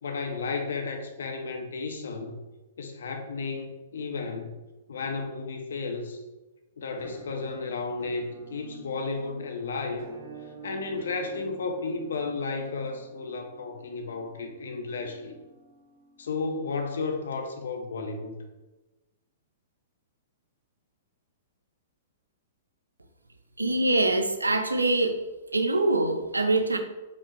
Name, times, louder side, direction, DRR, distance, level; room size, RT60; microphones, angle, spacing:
voice 1, 0.0-2.4 2.8-4.5 4.9-6.2 6.8-10.1 10.6-15.4 16.2-18.4, left 4 dB, 60° left, 0.6 m, -33 dB
Musical instrument, 7.0-16.8, right 5 dB, 40° right, 0.9 m, -49 dB
voice 2, 23.6-25.2 25.5-26.8, right 2 dB, 80° right, 0.4 m, -24 dB
4.8 x 3.4 x 3.0 m
figure-of-eight pair, 110°, 0 cm